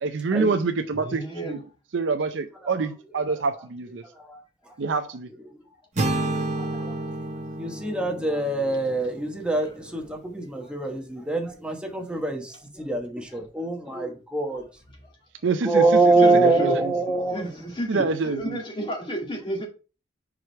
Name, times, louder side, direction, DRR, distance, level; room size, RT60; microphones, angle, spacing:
voice 1, 0.0-1.6 1.9-4.0 4.8-5.3 15.4-15.8 16.4-16.7 17.9-18.6, right 4 dB, 80° right, 0.5 m, -26 dB
voice 2, 0.9-1.6 6.7-6.8 16.2-16.8 17.3-19.7, equal, 30° left, 2.0 m, -31 dB
voice 3, 2.4-3.4 4.0-4.7 5.4-5.6 6.2-7.0 7.6-14.7 15.6-17.6, right 2 dB, 5° right, 1.1 m, -25 dB
sound 1, 6.0-10.0, right 2 dB, 40° right, 1.2 m, -30 dB
4.9 x 4.9 x 4.4 m
head